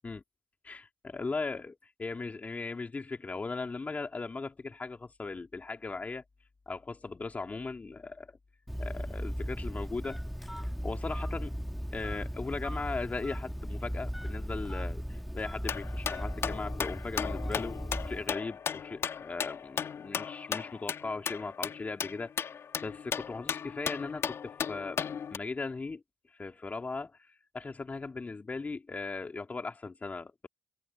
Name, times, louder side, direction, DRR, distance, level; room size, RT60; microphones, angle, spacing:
voice 1, 0.6-6.2 6.7-8.3 8.8-10.5 10.8-11.5 11.9-17.8 18.0-22.5 22.8-26.0 26.4-27.2 27.5-30.5, left 3 dB, 25° left, 3.3 m, -38 dB
Telephone, 8.7-18.4, equal, ahead, 2.6 m, -37 dB
sound 1, 15.6-25.4, left 7 dB, 50° left, 3.3 m, -36 dB
hypercardioid pair, 55°, 6 cm